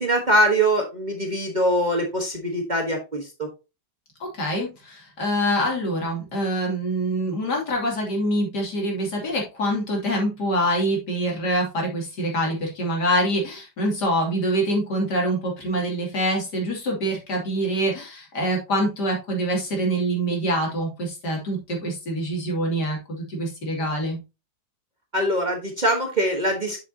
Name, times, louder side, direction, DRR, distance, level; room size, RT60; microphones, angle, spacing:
voice 1, 0.0-3.5 25.1-26.8, right 1 dB, 30° right, 2 dB, 1.2 m, -23 dB
voice 2, 4.2-24.2, right 1 dB, 70° left, -1 dB, 3.3 m, -25 dB
8.0 x 6.5 x 2.8 m, 0.27 s
omnidirectional pair, 1.9 m